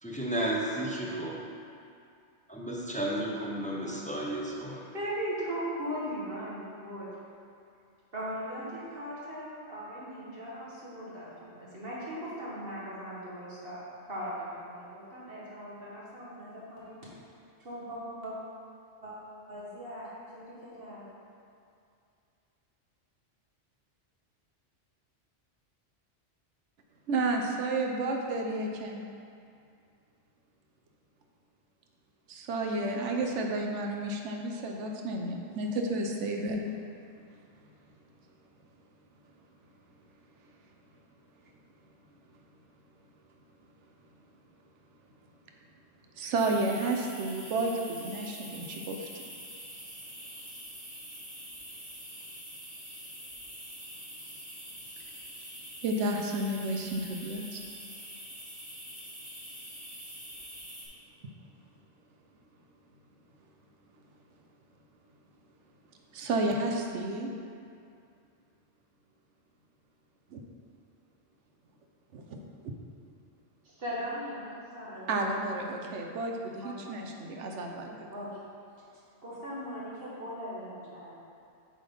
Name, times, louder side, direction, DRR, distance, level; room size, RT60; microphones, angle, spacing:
voice 1, 0.0-1.4 2.5-4.8, right 1 dB, 10° left, -3 dB, 0.6 m, -33 dB
voice 2, 4.7-7.1 8.1-13.8 14.1-17.0 17.6-18.3 19.0-19.2 19.5-20.1 20.3-21.0 73.6-75.4 76.6-77.0 78.1-78.3 78.9-81.1, equal, 55° right, -7 dB, 1.8 m, -39 dB
voice 3, 27.1-29.0 32.3-36.6 46.2-49.2 55.8-57.6 66.1-67.3 70.3-70.4 72.1-72.7 75.1-78.0, right 2 dB, 80° right, 2 dB, 1.0 m, -31 dB
sound 1, 46.3-60.9, equal, 10° right, 1.8 m, -45 dB
7.7 x 3.8 x 5.3 m, 2.4 s
omnidirectional pair, 1.2 m